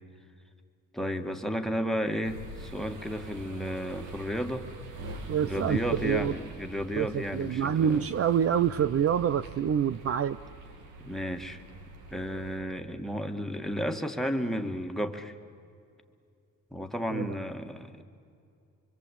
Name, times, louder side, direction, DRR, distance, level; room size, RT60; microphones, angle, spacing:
voice 1, 0.9-4.7 5.5-8.0 11.0-11.6 12.1-15.3 16.7-18.0, equal, ahead, 4 dB, 2.1 m, -33 dB
sound 1, 2.2-12.6, right 2 dB, 90° right, 2.6 m, -43 dB
voice 2, 5.3-6.4 7.0-10.4 17.1-17.3, right 8 dB, 50° right, 15 dB, 0.7 m, -27 dB
26.0 x 24.5 x 8.5 m, 2.4 s
cardioid pair, 90°, 30 cm